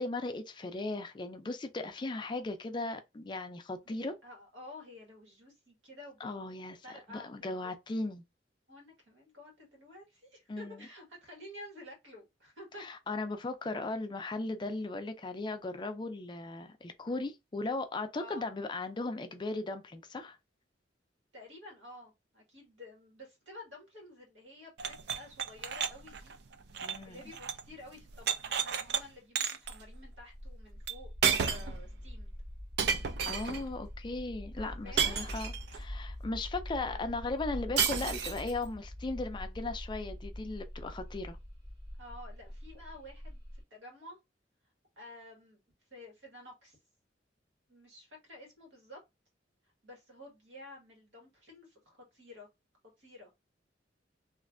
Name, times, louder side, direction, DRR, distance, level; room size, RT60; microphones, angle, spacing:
voice 1, 0.0-4.1 6.2-6.8 7.1-8.2 10.5-10.8 12.8-20.4 26.8-27.2 33.3-41.4, left 2 dB, 25° left, 0.4 m, -37 dB
voice 2, 3.8-6.2 6.8-7.7 8.7-12.8 18.1-18.5 21.3-26.3 27.0-31.1 31.4-32.3 34.5-35.4 36.8-37.0 42.0-43.4 43.7-44.2 45.0-45.6 45.9-46.8 47.7-49.0 49.8-52.5 53.0-53.3, left 1 dB, 85° right, 1.6 m, -51 dB
sound 1, 24.8-27.7 28.0-29.0 29.4-29.7 30.9-31.0 31.2-31.8 32.8-33.6 35.0-35.8 37.8-38.5, right 7 dB, 65° right, 0.4 m, -32 dB
sound 2, 29.6-43.6, equal, 30° right, 1.5 m, -44 dB
3.1 x 2.5 x 2.5 m
head